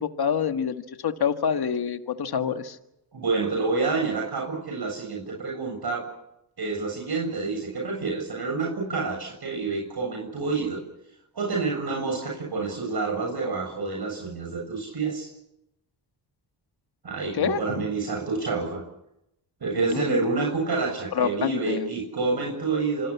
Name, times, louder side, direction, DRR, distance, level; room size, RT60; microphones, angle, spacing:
voice 1, 0.0-2.8 17.4-17.9 19.8-20.3 21.1-21.9, left 7 dB, 60° left, 7 dB, 1.8 m, -27 dB
voice 2, 3.1-6.1 6.6-10.8 11.3-15.3 17.0-18.8 19.6-23.1, right 4 dB, 60° right, 0 dB, 7.4 m, -28 dB
27.0 x 19.0 x 7.3 m, 0.82 s
cardioid pair, 60°, 43 cm